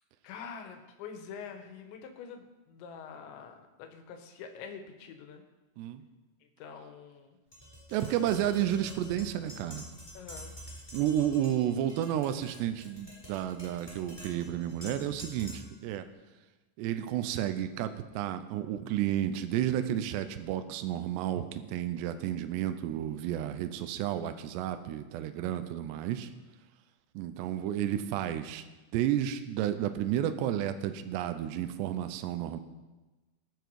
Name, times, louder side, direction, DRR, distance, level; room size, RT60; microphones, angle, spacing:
voice 1, 0.2-5.4 6.6-7.4 10.2-10.5, left 6 dB, 80° left, 5 dB, 3.5 m, -45 dB
Tap, 7.5-15.8, equal, 5° left, 4.0 m, -48 dB
voice 2, 7.9-9.9 10.9-16.1 16.8-26.3 27.2-28.6 28.9-32.6, right 11 dB, 80° right, 9 dB, 2.7 m, -31 dB
20.5 x 7.0 x 4.7 m, 1.2 s
omnidirectional pair, 5.2 m